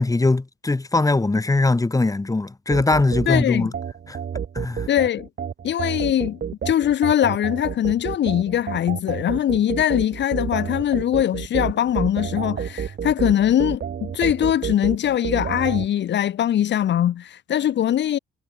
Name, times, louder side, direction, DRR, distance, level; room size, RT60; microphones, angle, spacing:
voice 1, 0.0-3.7 4.1-4.2 4.5-4.9, left 2 dB, 15° left, 2.6 m, -21 dB
sound 1, 2.7-15.9, right 7 dB, 50° right, 5.7 m, -30 dB
voice 2, 3.3-3.7 4.9-5.3 5.6-6.4 6.6-18.2, left 11 dB, 65° left, 1.3 m, -21 dB
cardioid pair, 90°, 20 cm